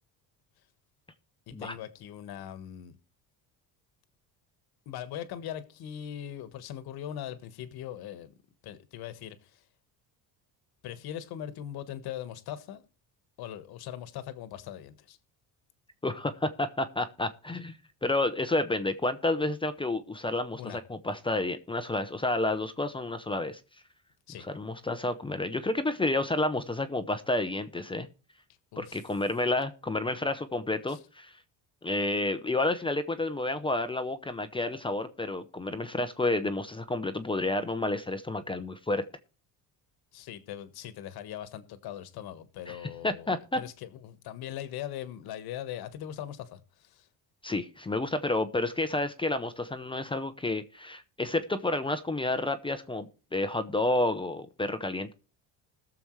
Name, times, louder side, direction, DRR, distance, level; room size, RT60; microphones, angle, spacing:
voice 1, 1.5-3.0 4.8-8.3 8.6-9.6 10.8-12.8 13.4-15.2 20.6-20.8 24.3-24.4 28.7-29.0 30.9-31.0 40.1-47.1, left 11 dB, 65° left, 1.5 m, -40 dB
voice 2, 16.0-17.8 18.0-23.6 24.5-28.1 28.8-31.3 31.8-39.0 42.7-42.8 43.0-43.6 47.4-55.1, left 2 dB, 15° left, 0.7 m, -30 dB
21.0 x 7.0 x 3.2 m
cardioid pair, 125°, 40 cm